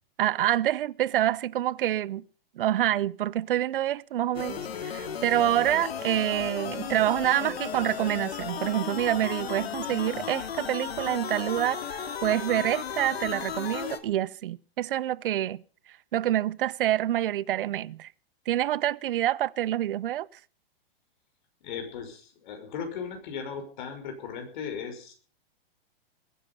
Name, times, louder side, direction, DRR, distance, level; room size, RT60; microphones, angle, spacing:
voice 1, 0.2-2.2 2.6-15.6 16.1-18.1 18.5-20.3, right 13 dB, 60° right, 0.7 m, -27 dB
sound 1, 4.3-14.0, left 8 dB, 90° left, 2.5 m, -35 dB
voice 2, 21.6-25.1, left 6 dB, 50° left, 5.8 m, -37 dB
21.0 x 10.5 x 5.5 m
hypercardioid pair, 155°, 30 cm